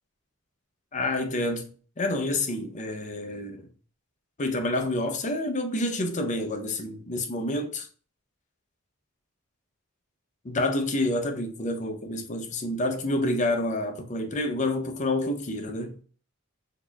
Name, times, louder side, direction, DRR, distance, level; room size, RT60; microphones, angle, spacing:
voice 1, 0.9-1.7 2.0-3.7 4.4-7.9 10.4-15.9, left 1 dB, 35° left, 0.5 m, -28 dB
4.2 x 2.8 x 2.2 m
head